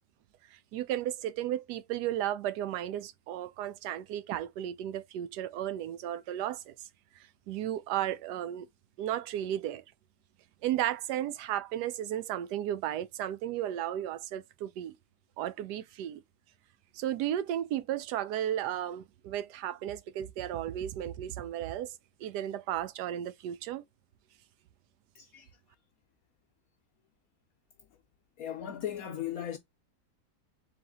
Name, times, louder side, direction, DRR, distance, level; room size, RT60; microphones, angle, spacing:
voice 1, 0.5-6.7 7.5-8.7 9.0-9.8 10.6-14.9 15.4-16.2 16.9-23.8, right 11 dB, 80° right, 1.1 m, -34 dB
voice 2, 25.1-25.6 27.9-28.0 28.4-29.6, left 10 dB, 70° left, 0.9 m, -37 dB
4.0 x 2.9 x 3.5 m
omnidirectional pair, 1.7 m